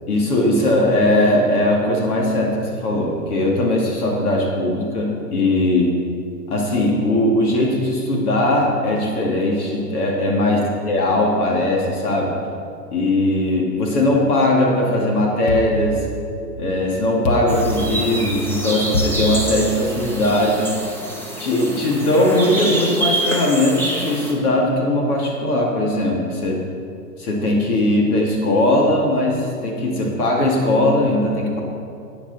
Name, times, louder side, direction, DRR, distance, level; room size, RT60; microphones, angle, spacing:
voice 1, 0.1-5.9 6.5-12.4 12.9-16.0 16.6-20.7 21.4-26.6 27.2-31.6, left 1 dB, 65° left, -1 dB, 2.3 m, -19 dB
sound 1, 15.5-16.6 17.2-18.3 18.9-20.1, equal, 40° left, 1.4 m, -26 dB
sound 2, 17.5-24.3, right 1 dB, 5° left, 1.0 m, -27 dB
11.5 x 9.3 x 4.1 m, 2.6 s
hypercardioid pair, 125°, 49 cm